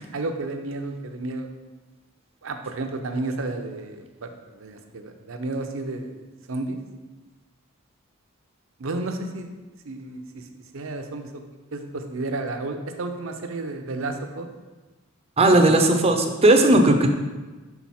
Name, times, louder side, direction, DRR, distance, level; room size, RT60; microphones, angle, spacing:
voice 1, 0.1-1.5 2.4-6.2 6.5-6.8 8.8-9.5 9.8-11.4 11.7-14.5, right 2 dB, 70° right, 6 dB, 0.6 m, -32 dB
voice 2, 15.4-17.1, right 2 dB, 30° right, 5 dB, 0.6 m, -16 dB
5.9 x 3.9 x 4.2 m, 1.2 s
head